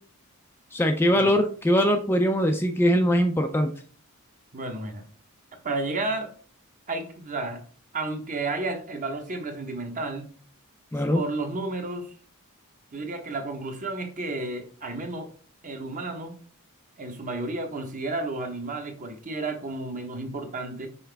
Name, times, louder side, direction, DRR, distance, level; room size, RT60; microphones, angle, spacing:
voice 1, 0.7-3.7 10.9-11.2, equal, 10° left, 5 dB, 0.4 m, -22 dB
voice 2, 4.5-5.0 5.6-6.3 6.9-7.6 7.9-10.3 11.1-12.1 12.9-15.3 15.6-16.4 17.0-20.9, right 2 dB, 35° right, 5 dB, 1.0 m, -32 dB
5.6 x 4.9 x 3.4 m, 0.43 s
head